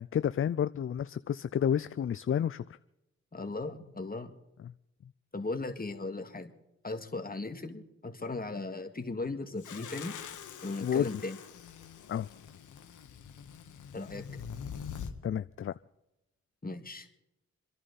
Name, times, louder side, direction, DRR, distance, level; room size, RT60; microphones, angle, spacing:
voice 1, 0.0-2.6 4.6-4.7 10.8-11.1 12.1-12.3 15.2-15.7, left 9 dB, 45° left, 0.4 m, -30 dB
voice 2, 3.3-4.3 5.3-6.5 6.8-10.2 10.6-11.4 13.9-14.2 16.6-17.1, left 3 dB, 30° left, 2.1 m, -37 dB
sound 1, 9.6-15.1, left 7 dB, 90° left, 1.2 m, -44 dB
28.0 x 11.0 x 4.2 m
cardioid pair, 50°, 29 cm